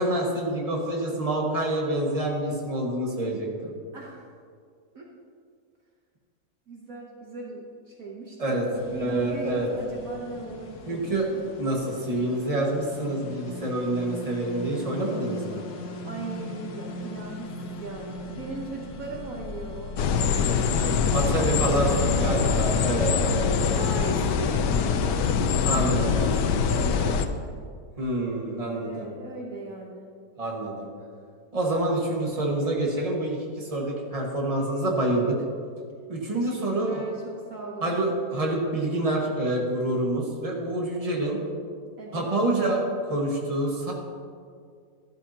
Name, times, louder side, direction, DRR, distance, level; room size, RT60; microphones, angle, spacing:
voice 1, 0.0-3.7 8.4-8.6 9.0-9.7 10.9-11.3 11.6-15.6 20.8-23.9 25.6-26.2 28.0-29.1 30.4-30.9 31.5-35.4 36.1-37.0 37.8-41.4 42.1-43.9, right 1 dB, 20° right, -2 dB, 1.7 m, -27 dB
voice 2, 3.9-4.3 4.9-5.1 6.7-11.0 16.0-22.7 23.4-27.6 28.7-30.1 36.3-38.0 42.0-42.3, right 2 dB, 55° right, -1 dB, 1.4 m, -38 dB
sound 1, 8.7-22.1, left 3 dB, 70° left, 1.5 m, -39 dB
sound 2, 20.0-27.3, left 6 dB, 85° left, 1.3 m, -24 dB
13.0 x 12.5 x 2.9 m, 2.2 s
omnidirectional pair, 1.8 m